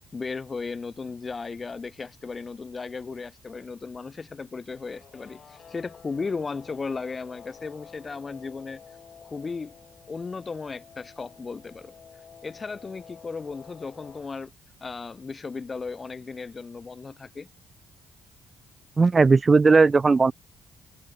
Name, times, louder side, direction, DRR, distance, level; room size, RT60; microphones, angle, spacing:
voice 1, 0.1-8.8 9.2-9.7 10.1-11.9 12.4-14.5 14.8-17.5, left 4 dB, 30° left, 2.3 m, -35 dB
Guitar, 4.8-14.3, left 7 dB, 50° left, 4.8 m, -50 dB
voice 2, 19.0-20.3, right 4 dB, 30° right, 0.6 m, -17 dB
cardioid pair, 90°, 0 cm